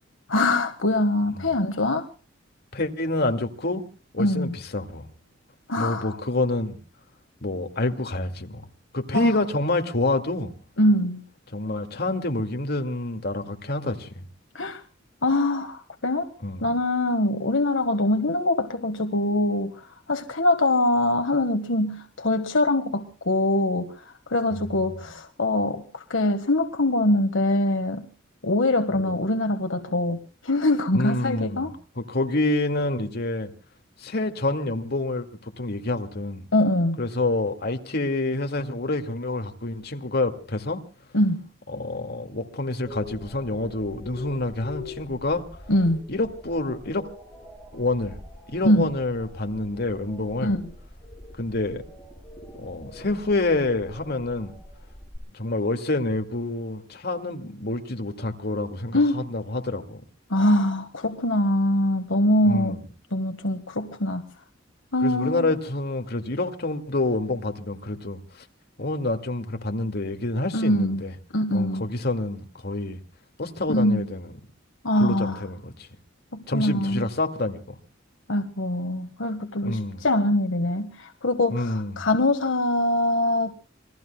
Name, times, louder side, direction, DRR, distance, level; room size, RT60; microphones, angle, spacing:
voice 1, 0.3-2.0 4.2-4.6 5.7-6.2 9.1-9.4 10.8-11.2 14.5-14.8 15.2-16.3 16.6-23.9 24.3-28.1 28.4-31.7 36.5-37.0 41.1-41.4 45.7-46.0 48.6-48.9 50.4-50.7 58.9-59.2 60.3-62.8 63.1-64.2 64.9-65.5 70.5-71.0 71.3-71.9 73.7-74.0 74.8-75.4 76.3-77.1 78.3-83.5, left 1 dB, 85° left, 1.5 m, -23 dB
voice 2, 2.7-3.9 4.1-5.1 5.8-6.8 7.4-8.6 8.9-10.5 11.5-14.1 16.4-16.6 24.5-25.1 28.9-29.1 30.9-33.5 34.0-36.5 37.0-40.8 41.7-45.5 46.1-47.1 47.7-48.2 48.5-50.6 51.4-51.8 52.6-54.5 55.3-60.0 62.4-62.8 65.0-68.2 68.8-71.1 71.5-73.0 73.4-74.3 75.0-75.9 76.5-77.8 79.6-80.0 81.5-82.1, left 2 dB, 55° left, 2.1 m, -27 dB
sound 1, 42.8-55.2, left 2 dB, 5° right, 6.4 m, -44 dB
27.5 x 21.5 x 2.2 m
head